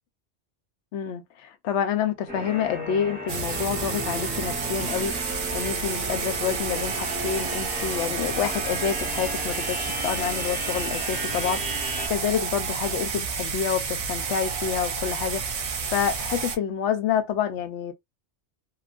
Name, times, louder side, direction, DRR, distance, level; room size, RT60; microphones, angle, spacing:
voice 1, 0.9-5.2 5.5-15.4 15.9-17.9, left 8 dB, 80° left, 0.9 m, -28 dB
sound 1, 2.3-12.1, equal, 10° right, 0.7 m, -35 dB
sound 2, 3.3-16.6, right 5 dB, 60° right, 0.3 m, -30 dB
2.9 x 2.3 x 2.4 m
omnidirectional pair, 1.2 m